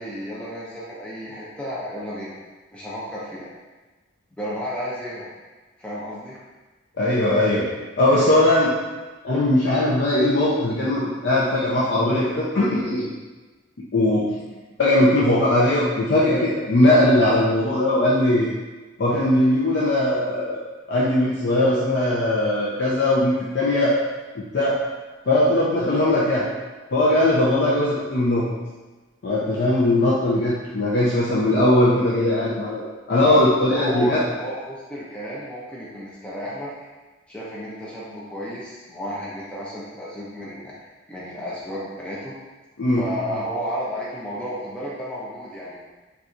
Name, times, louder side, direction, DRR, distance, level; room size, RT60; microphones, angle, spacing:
voice 1, 0.0-2.4 2.7-3.5 4.3-5.3 5.8-6.4 14.5-14.6 33.1-36.7 37.3-40.7 41.1-42.3 42.9-45.8, equal, 5° left, -7 dB, 0.4 m, -32 dB
voice 2, 7.0-7.7 8.0-8.7 9.2-13.1 13.9-14.3 14.8-18.5 19.0-20.6 20.9-24.0 24.3-24.8 25.3-26.5 26.9-28.4 29.2-32.8 33.1-34.2 42.8-43.1, left 1 dB, 60° left, -8 dB, 0.5 m, -19 dB
4.0 x 2.4 x 2.4 m, 1.2 s
head